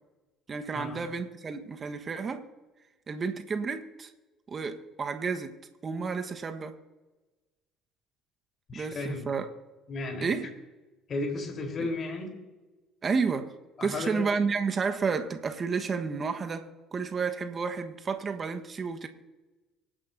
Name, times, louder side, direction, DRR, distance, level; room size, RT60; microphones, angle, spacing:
voice 1, 0.5-2.5 3.1-4.1 4.5-5.5 5.8-6.7 8.7-9.5 10.2-10.5 13.0-13.5 13.8-19.1, right 5 dB, 35° right, 1.2 m, -31 dB
voice 2, 8.7-9.3 9.9-10.4 11.1-12.3 13.8-14.3, left 2 dB, 45° left, 3.6 m, -34 dB
25.0 x 10.0 x 2.7 m
hypercardioid pair, 60°, 0 cm